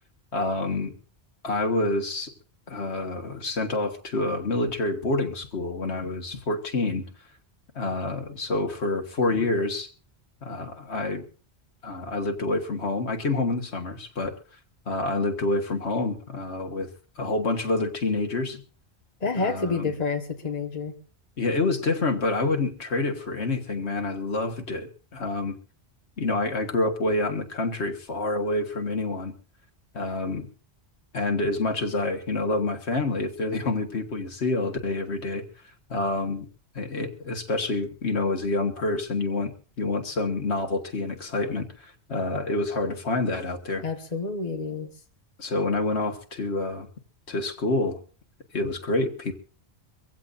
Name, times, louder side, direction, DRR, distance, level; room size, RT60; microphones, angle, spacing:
voice 1, 0.3-1.0 1.4-2.3 2.7-7.1 7.8-9.9 10.4-11.2 11.8-14.4 14.9-16.9 17.2-18.6 19.4-19.9 21.4-25.5 26.2-29.3 29.9-30.5 31.1-35.4 35.9-36.5 36.8-43.8 45.4-46.9 47.3-48.0 48.5-49.3, left 2 dB, 75° left, 5 dB, 1.8 m, -27 dB
voice 2, 19.2-20.9 43.8-44.9, left 4 dB, 35° left, 3 dB, 1.6 m, -29 dB
23.5 x 15.5 x 2.6 m, 0.36 s
omnidirectional pair, 1.1 m